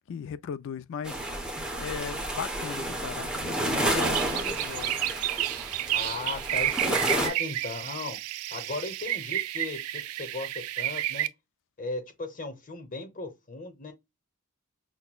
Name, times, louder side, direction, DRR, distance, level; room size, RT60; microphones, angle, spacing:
voice 1, 0.1-5.0, left 7 dB, 55° left, 0.3 m, -37 dB
sound 1, 1.0-7.3, right 1 dB, 5° right, 0.8 m, -31 dB
sound 2, 3.9-11.3, right 14 dB, 75° right, 0.3 m, -31 dB
voice 2, 5.9-8.2 8.5-11.3 11.8-13.9, left 3 dB, 40° left, 0.9 m, -37 dB
6.0 x 2.2 x 2.2 m
head